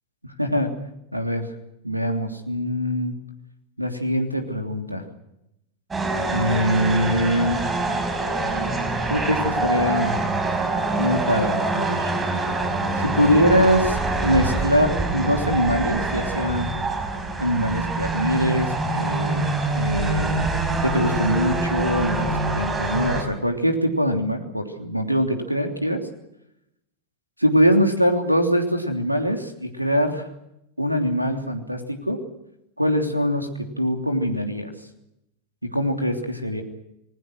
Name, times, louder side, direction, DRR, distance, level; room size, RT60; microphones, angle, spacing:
voice 1, 0.2-0.8 1.1-1.5 1.8-3.2 3.8-5.0 6.3-7.6 9.1-10.2 11.0-12.1 13.0-14.0 14.2-16.7 17.4-20.4 20.8-26.0 27.4-30.2 30.8-32.2 32.8-34.7 35.6-36.6, equal, 90° right, 5 dB, 3.1 m, -23 dB
sound 1, 5.9-23.2, right 2 dB, 15° right, 5.7 m, -25 dB
29.0 x 21.0 x 6.3 m, 0.83 s
figure-of-eight pair, 90°, 0 cm